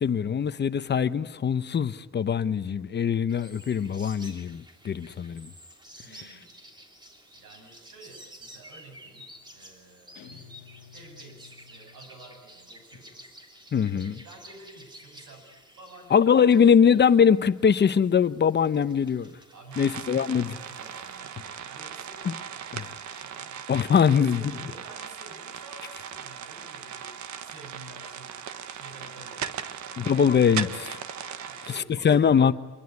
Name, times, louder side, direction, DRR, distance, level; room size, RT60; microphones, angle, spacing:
voice 1, 0.0-5.5 13.7-14.2 16.1-19.3 19.8-20.5 22.2-22.3 22.7-22.8 23.7-24.4 30.0-30.7 32.0-32.5, left 7 dB, 35° left, 0.9 m, -22 dB
sound 1, 3.3-21.2, equal, 15° right, 3.1 m, -51 dB
voice 2, 6.0-6.5 7.3-10.5 10.9-13.4 13.9-15.5 15.8-16.8 19.5-22.9 23.2-23.6 24.0-30.2 30.6-30.9 31.4-32.5, right 2 dB, 90° right, 8.0 m, -50 dB
Guitar, 10.1-12.7, left 8 dB, 80° left, 1.7 m, -52 dB
sound 2, 19.7-31.8, right 8 dB, 70° right, 1.5 m, -38 dB
25.0 x 21.5 x 9.5 m
cardioid pair, 135°, 30 cm